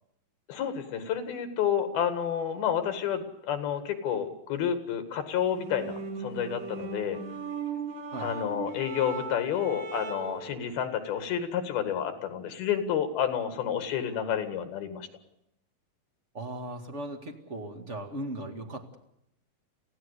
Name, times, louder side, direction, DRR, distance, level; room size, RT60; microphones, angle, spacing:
voice 1, 0.5-7.2 8.2-15.1, left 8 dB, 85° left, 9 dB, 3.8 m, -30 dB
sound 1, 5.5-10.5, right 5 dB, 85° right, 6.5 m, -38 dB
voice 2, 16.3-19.0, right 1 dB, 30° right, 3 dB, 1.5 m, -38 dB
25.0 x 16.0 x 8.3 m, 0.78 s
omnidirectional pair, 4.2 m